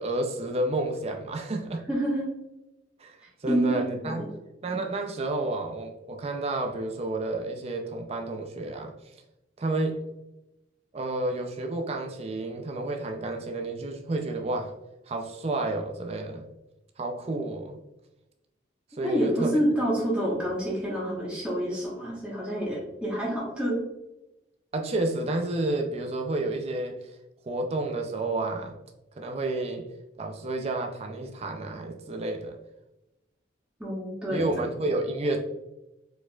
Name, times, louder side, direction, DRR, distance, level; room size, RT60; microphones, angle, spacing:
voice 1, 0.0-1.9 3.0-4.3 4.6-8.9 9.6-10.0 10.9-14.7 15.1-16.5 17.0-17.8 18.9-19.6 24.7-27.2 27.4-28.8 29.2-29.9 30.2-32.6 34.3-35.4, right 2 dB, 35° right, 4 dB, 0.4 m, -30 dB
voice 2, 1.9-2.3 3.5-3.7 4.0-4.3 19.0-23.8 33.8-34.6, right 1 dB, 5° right, -7 dB, 1.2 m, -27 dB
4.6 x 4.3 x 2.3 m, 0.95 s
head